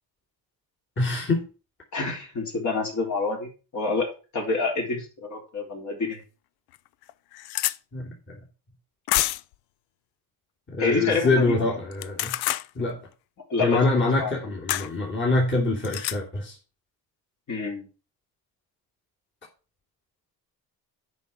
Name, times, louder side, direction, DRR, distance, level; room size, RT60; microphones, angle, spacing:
voice 1, 1.0-1.5 1.9-2.1 7.9-8.4 10.7-12.4 12.7-13.0 13.6-16.6, left 2 dB, 30° left, -3 dB, 3.0 m, -25 dB
voice 2, 1.9-4.1 4.3-6.2 10.8-11.6 13.5-14.3 17.5-17.9, left 3 dB, 50° left, 1 dB, 4.0 m, -27 dB
sound 1, 6.1-6.2 6.7-6.8 7.0-7.8 9.1-9.5 11.9-12.7 14.7-14.9 15.8-16.2, left 16 dB, 85° left, 0.6 m, -27 dB
8.1 x 5.5 x 6.8 m, 0.35 s
cardioid pair, 110°, 37 cm